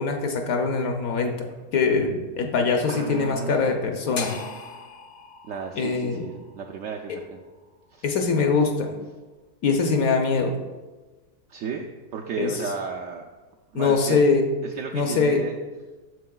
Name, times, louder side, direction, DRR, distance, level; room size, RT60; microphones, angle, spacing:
voice 1, 0.0-4.4 5.8-6.3 7.1-7.2 8.0-9.0 9.6-10.6 12.4-12.5 13.7-14.5 14.9-15.4, left 4 dB, 65° left, 4 dB, 1.0 m, -23 dB
voice 2, 2.9-3.7 5.5-7.4 7.9-8.0 11.5-11.9 12.1-13.3 13.7-14.2 14.6-15.6, right 5 dB, 70° right, 0 dB, 0.7 m, -34 dB
sound 1, 4.2-8.3, left 4 dB, 90° left, 0.4 m, -39 dB
9.4 x 6.9 x 2.3 m, 1.2 s
omnidirectional pair, 1.7 m